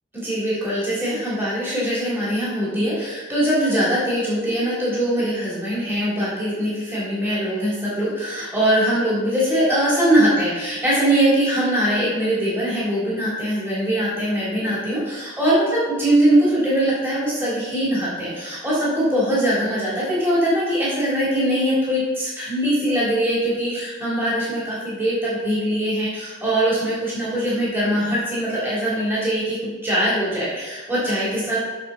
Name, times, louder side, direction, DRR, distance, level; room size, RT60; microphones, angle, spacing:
voice 1, 0.2-31.6, right 1 dB, 10° right, -9 dB, 3.7 m, -22 dB
13.5 x 7.0 x 4.3 m, 1.3 s
head